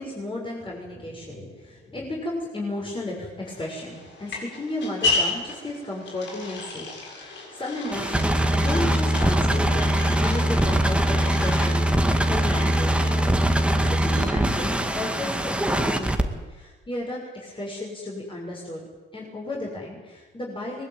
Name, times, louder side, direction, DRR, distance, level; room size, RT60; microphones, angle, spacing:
voice 1, 0.0-6.9 7.1-13.4 13.7-18.9 19.1-20.9, left 2 dB, 25° left, -3 dB, 6.5 m, -34 dB
sound 1, 3.4-14.7, left 3 dB, 70° left, 7.4 m, -34 dB
sound 2, 7.9-16.2, right 1 dB, 5° right, 2.2 m, -22 dB
21.5 x 20.0 x 9.2 m, 1.2 s
cardioid pair, 90°, 20 cm